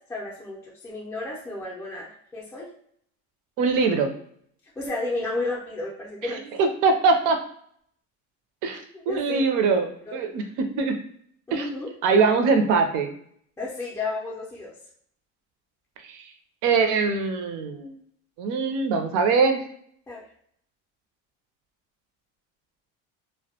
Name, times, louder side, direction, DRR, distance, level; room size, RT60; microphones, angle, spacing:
voice 1, 0.1-2.7 4.8-6.4 8.7-9.5 10.1-10.2 11.5-11.9 13.6-14.7 20.1-20.2, left 2 dB, 10° left, -6 dB, 0.4 m, -32 dB
voice 2, 3.6-4.1 6.3-7.4 8.6-8.8 9.1-10.5 10.8-11.0 11.5-11.7 12.0-13.1 16.1-16.2 16.6-17.9 18.4-19.6, right 4 dB, 70° right, 5 dB, 0.6 m, -22 dB
2.1 x 2.1 x 2.7 m, 0.64 s
cardioid pair, 135°, 32 cm